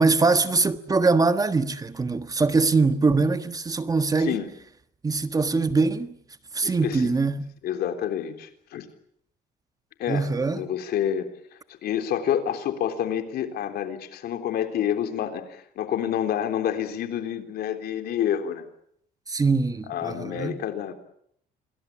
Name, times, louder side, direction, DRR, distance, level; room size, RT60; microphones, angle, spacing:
voice 1, 0.0-4.4 5.0-6.1 6.5-7.4 10.1-10.6 19.3-20.6, right 3 dB, 20° right, 1.5 m, -22 dB
voice 2, 4.2-4.5 6.6-7.1 7.6-8.9 10.0-11.3 11.8-18.7 19.9-20.9, left 9 dB, 70° left, 3.6 m, -28 dB
27.5 x 21.5 x 8.5 m
cardioid pair, 110°, 17 cm